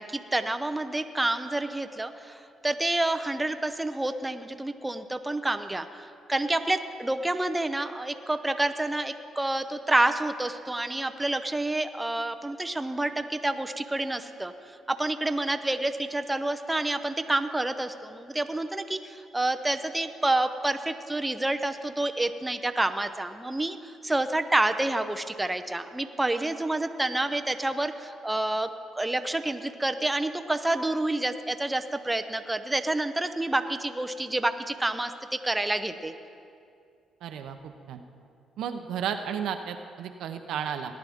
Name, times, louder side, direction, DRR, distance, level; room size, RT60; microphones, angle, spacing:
voice 1, 0.0-36.1, right 2 dB, 10° right, 8 dB, 0.5 m, -28 dB
voice 2, 37.2-38.0 38.6-40.9, right 8 dB, 80° right, 7 dB, 0.7 m, -33 dB
18.0 x 10.5 x 3.6 m, 2.5 s
cardioid pair, 90°, 0 cm